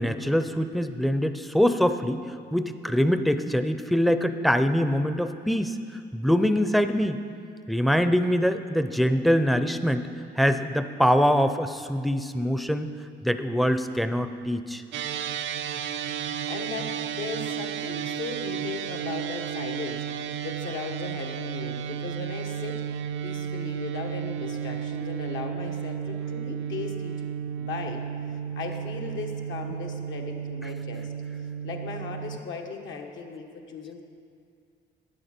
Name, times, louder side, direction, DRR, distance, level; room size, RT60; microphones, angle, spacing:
voice 1, 0.0-2.2 2.5-5.8 6.1-7.2 7.7-10.0 10.4-12.9 13.2-14.8, equal, ahead, 9 dB, 0.5 m, -24 dB
sound 1, 14.9-32.4, right 8 dB, 70° right, 0.5 m, -33 dB
voice 2, 16.5-27.3 27.6-28.0 28.6-31.1 31.6-34.0, left 5 dB, 75° left, 2 dB, 1.2 m, -37 dB
12.0 x 8.8 x 4.4 m, 2.3 s
cardioid pair, 90°, 20 cm